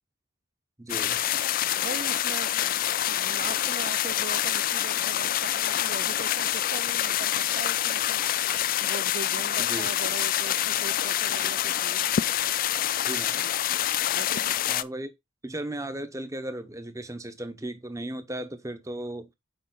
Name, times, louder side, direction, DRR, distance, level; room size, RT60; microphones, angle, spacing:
voice 1, 0.8-1.2 9.6-9.9 13.1-13.4 14.7-15.1 15.4-19.3, right 1 dB, 15° right, 0.9 m, -36 dB
sound 1, 0.9-14.8, left 12 dB, 45° left, 0.3 m, -26 dB
voice 2, 1.8-8.2 8.8-12.1 14.1-14.6, right 5 dB, 45° right, 0.4 m, -40 dB
6.6 x 5.0 x 3.9 m
head